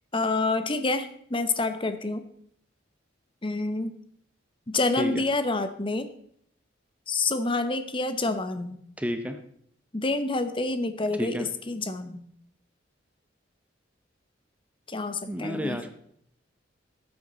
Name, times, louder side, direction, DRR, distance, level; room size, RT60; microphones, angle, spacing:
voice 1, 0.1-2.2 3.4-3.9 4.7-6.1 7.1-8.8 9.9-12.2 14.9-15.8, left 3 dB, 25° left, 10 dB, 0.8 m, -28 dB
voice 2, 9.0-9.4 11.2-11.5 15.3-15.9, equal, 5° right, 7 dB, 0.7 m, -30 dB
13.5 x 8.0 x 3.9 m, 0.68 s
head